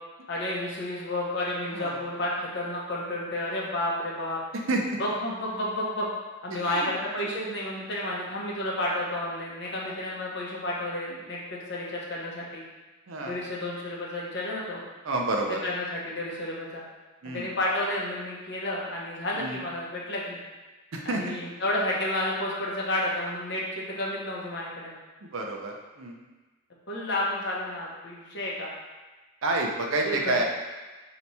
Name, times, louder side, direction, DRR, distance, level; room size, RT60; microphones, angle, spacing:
voice 1, 0.3-4.4 5.0-6.1 6.4-12.6 13.2-14.8 15.6-16.8 17.3-20.4 21.0-25.0 26.9-28.7 30.0-30.4, left 1 dB, 50° left, -4 dB, 0.8 m, -31 dB
voice 2, 6.5-6.9 9.9-10.0 13.1-13.4 15.0-15.6 17.2-17.5 19.3-19.6 20.9-21.4 25.3-26.2 29.4-30.4, right 2 dB, 70° right, 1 dB, 0.6 m, -29 dB
3.3 x 2.9 x 4.1 m, 1.2 s
head